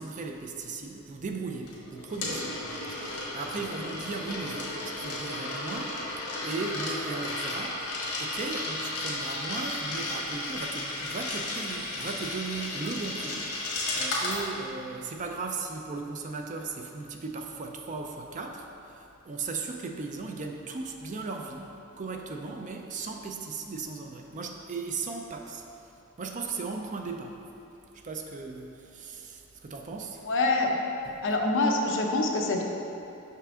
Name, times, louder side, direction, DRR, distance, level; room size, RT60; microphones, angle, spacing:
voice 1, 0.0-2.6 2.9-6.0 6.4-25.6 26.2-27.4 27.9-30.3 31.0-31.2, right 4 dB, 35° right, 3 dB, 0.4 m, -37 dB
Coin (dropping), 1.7-14.4, left 2 dB, 80° left, 1.3 m, -34 dB
voice 2, 30.3-30.8 31.2-32.6, left 2 dB, 60° left, 1 dB, 0.6 m, -25 dB
5.8 x 5.6 x 3.6 m, 2.8 s
head